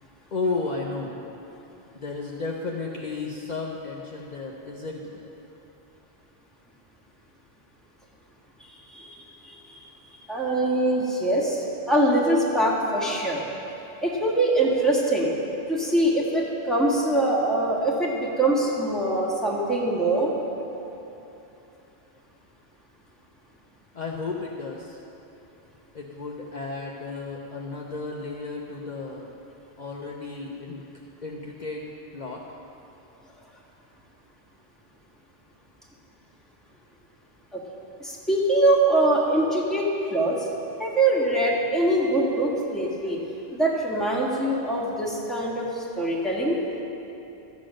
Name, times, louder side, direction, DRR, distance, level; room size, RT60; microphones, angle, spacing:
voice 1, 0.3-1.2 1.9-5.3 23.9-25.0 25.9-29.3 29.8-31.8 32.1-32.4, left 3 dB, 50° left, -1 dB, 0.9 m, -33 dB
voice 2, 10.3-13.4 14.0-15.3 15.7-20.3 38.0-39.8 40.1-40.4 40.8-43.2 43.5-45.7 46.0-46.6, right 1 dB, ahead, -5 dB, 1.9 m, -23 dB
13.0 x 8.3 x 6.4 m, 3.0 s
omnidirectional pair, 1.0 m